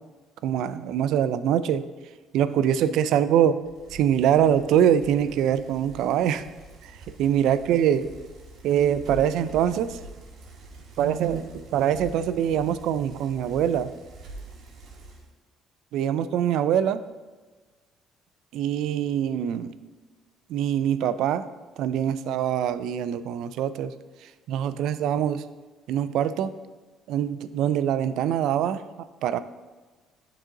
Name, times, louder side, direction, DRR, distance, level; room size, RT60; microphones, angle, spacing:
voice 1, 0.4-1.8 2.3-3.6 3.9-6.5 6.8-6.9 7.2-8.1 8.6-10.0 11.0-13.9 15.9-17.1 18.5-19.7 20.5-21.5 21.8-23.9 24.5-25.5 25.9-26.6 27.1-29.4, right 9 dB, 65° right, 13 dB, 0.3 m, -24 dB
Bicycle, 3.6-15.3, right 2 dB, 50° right, 1.3 m, -45 dB
10.5 x 3.8 x 3.8 m, 1.3 s
cardioid pair, 175°, 0 cm